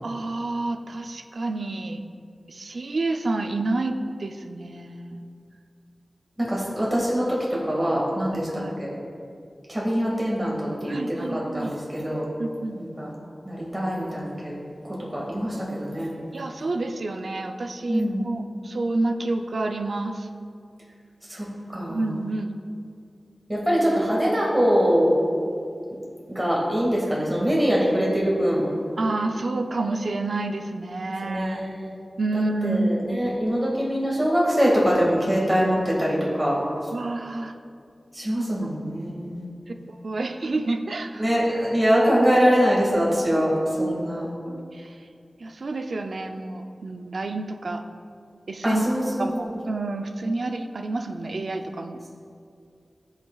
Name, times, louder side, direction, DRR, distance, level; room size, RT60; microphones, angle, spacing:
voice 1, 0.0-2.0 2.5-5.2 8.3-8.7 10.9-11.7 12.4-12.8 16.3-20.3 21.9-22.5 29.0-31.6 32.2-33.1 36.9-37.5 38.3-38.7 39.7-41.3 43.3-43.4 43.8-44.0 44.5-45.0 45.4-47.8 48.5-48.8 49.2-52.1, right 2 dB, 70° right, 6 dB, 0.5 m, -29 dB
voice 2, 6.4-8.9 9.7-12.2 12.8-13.1 13.5-14.5 14.8-16.1 17.9-18.2 21.3-21.5 21.7-22.0 23.5-25.1 26.3-28.7 31.2-31.9 32.3-36.6 38.1-39.4 41.2-44.3 48.6-49.4, equal, 15° right, -5 dB, 1.9 m, -23 dB
14.5 x 5.6 x 2.4 m, 2.4 s
wide cardioid pair, 65°, 0 cm